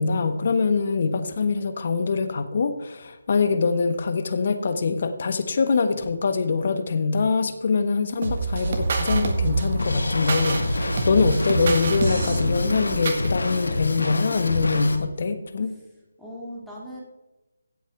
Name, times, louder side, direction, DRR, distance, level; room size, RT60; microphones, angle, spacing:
voice 1, 0.0-15.7, left 4 dB, 50° left, 9 dB, 1.3 m, -24 dB
sound 1, 8.2-13.3, right 3 dB, 45° right, 1.8 m, -26 dB
Drum kit, 9.8-15.0, left 2 dB, 80° left, 1.6 m, -28 dB
voice 2, 16.2-17.0, equal, ahead, -7 dB, 2.5 m, -39 dB
16.5 x 8.2 x 3.5 m, 1.1 s
figure-of-eight pair, 155°, 0 cm